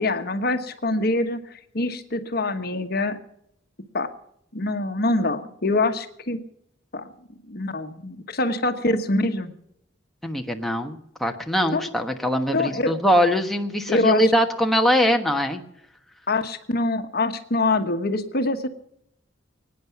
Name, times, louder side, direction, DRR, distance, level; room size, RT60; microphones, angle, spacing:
voice 1, 0.0-3.2 3.9-4.1 4.5-6.4 6.9-7.1 7.5-9.5 11.7-11.9 12.5-12.9 13.9-14.2 16.3-18.7, left 2 dB, 55° left, 8 dB, 1.2 m, -24 dB
voice 2, 10.2-15.6, equal, ahead, 3 dB, 1.2 m, -22 dB
23.5 x 9.6 x 5.9 m, 0.76 s
head